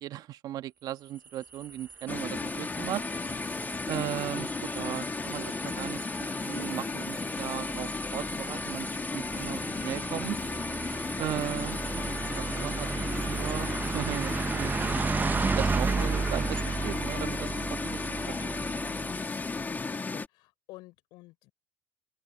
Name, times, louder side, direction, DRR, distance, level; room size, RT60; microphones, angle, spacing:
voice 1, 0.0-3.0 3.9-10.4 11.2-14.7 15.6-18.0 18.3-18.5, right 13 dB, 60° right, 1.5 m, -37 dB
sound 1, 1.2-19.8, right 4 dB, 25° right, 0.9 m, -34 dB
sound 2, 2.1-20.3, left 4 dB, 25° left, 2.5 m, -34 dB
voice 2, 20.0-21.5, left 20 dB, 70° left, 6.6 m, -51 dB
open air
hypercardioid pair, 75°, 8 cm